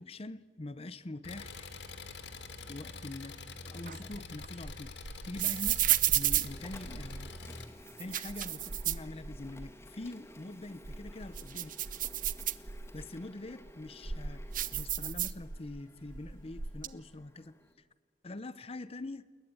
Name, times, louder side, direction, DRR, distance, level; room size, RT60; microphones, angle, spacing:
voice 1, 0.0-1.7 2.7-3.4 3.7-5.9 6.1-7.3 8.0-11.7 12.9-17.6 18.2-19.3, left 2 dB, 35° left, 0.8 m, -44 dB
Engine, 1.2-7.6, left 3 dB, 75° left, 2.2 m, -46 dB
sound 1, 3.9-7.3 7.9-9.7 10.1-10.2 10.7-13.1 13.6-15.8 16.1-16.9, right 11 dB, 50° right, 0.9 m, -33 dB
Printer, 6.4-17.7, left 1 dB, 15° left, 2.1 m, -55 dB
28.0 x 21.0 x 9.7 m
head